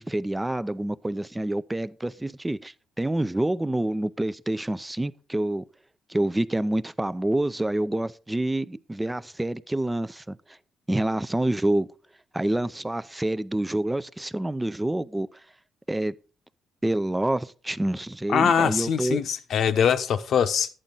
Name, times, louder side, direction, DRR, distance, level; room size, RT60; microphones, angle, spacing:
voice 1, 0.0-5.6 6.1-10.4 10.9-11.9 12.3-15.3 15.9-16.1 16.8-19.2, right 1 dB, 10° right, 0.5 m, -27 dB
voice 2, 18.3-20.7, left 7 dB, 65° left, 0.9 m, -22 dB
11.5 x 8.9 x 3.9 m
cardioid pair, 90°, 0 cm